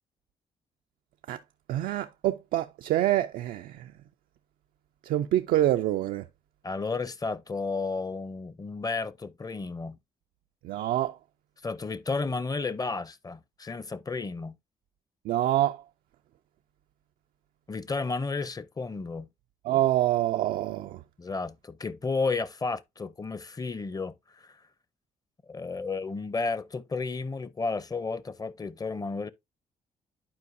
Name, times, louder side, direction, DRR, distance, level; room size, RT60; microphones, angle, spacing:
voice 1, 1.7-3.8 5.1-6.2 10.6-11.1 15.3-15.8 19.7-21.0, right 13 dB, 80° right, 0.4 m, -26 dB
voice 2, 6.6-10.0 11.6-14.6 17.7-19.3 21.2-24.6 25.5-29.3, left 4 dB, 25° left, 0.6 m, -32 dB
11.0 x 4.5 x 2.6 m
supercardioid pair, 65°, 15 cm